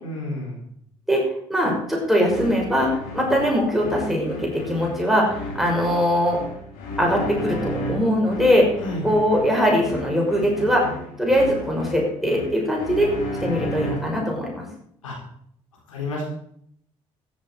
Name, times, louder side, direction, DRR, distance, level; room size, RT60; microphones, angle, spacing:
voice 1, 0.0-0.6 8.8-9.0 13.4-13.6 15.0-15.1 15.9-16.2, left 1 dB, 90° left, -2 dB, 4.1 m, -30 dB
voice 2, 1.5-6.4 7.0-8.7 9.0-10.8 11.2-13.1 13.4-14.7, equal, ahead, -2 dB, 5.7 m, -21 dB
sound 1, 2.2-14.3, equal, 65° left, 3.9 m, -33 dB
13.5 x 10.5 x 4.7 m, 0.68 s
hypercardioid pair, 50°, 16 cm